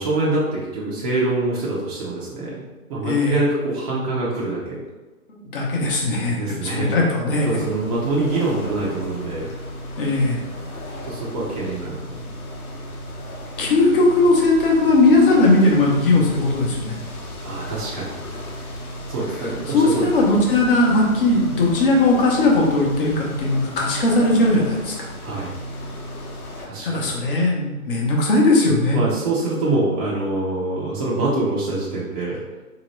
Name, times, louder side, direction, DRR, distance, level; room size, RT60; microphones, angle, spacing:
voice 1, 0.0-2.6 2.9-4.8 6.3-6.9 7.2-9.5 11.1-12.2 17.4-18.2 19.1-20.1 25.2-25.5 26.6-27.1 28.9-32.4, right 2 dB, 25° right, -7 dB, 0.6 m, -25 dB
voice 2, 3.0-3.4 5.3-7.5 10.0-10.4 13.6-17.0 19.3-25.1 26.6-29.0 32.2-32.3, left 2 dB, 40° left, -2 dB, 0.9 m, -18 dB
sound 1, 7.4-26.7, equal, 85° left, 0.9 m, -34 dB
3.6 x 2.9 x 3.1 m, 1.2 s
hypercardioid pair, 140°, 44 cm